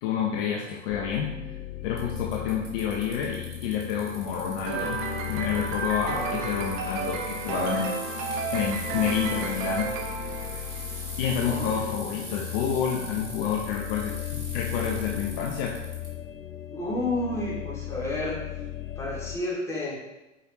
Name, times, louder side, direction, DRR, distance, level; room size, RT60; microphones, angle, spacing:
voice 1, 0.0-1.3 1.8-9.9 10.4-10.6 10.9-15.8, left 7 dB, 45° left, 0 dB, 0.8 m, -29 dB
sound 1, 0.9-19.4, left 13 dB, 85° left, 0.6 m, -37 dB
Bicycle, 2.0-16.1, right 1 dB, 85° right, 2.2 m, -42 dB
sound 2, 4.7-11.3, right 6 dB, 40° right, 0.9 m, -33 dB
voice 2, 11.4-11.8 16.7-18.4 19.0-20.0, left 1 dB, 5° left, -6 dB, 2.3 m, -30 dB
7.4 x 4.9 x 3.0 m, 1.0 s
figure-of-eight pair, 90°, 38 cm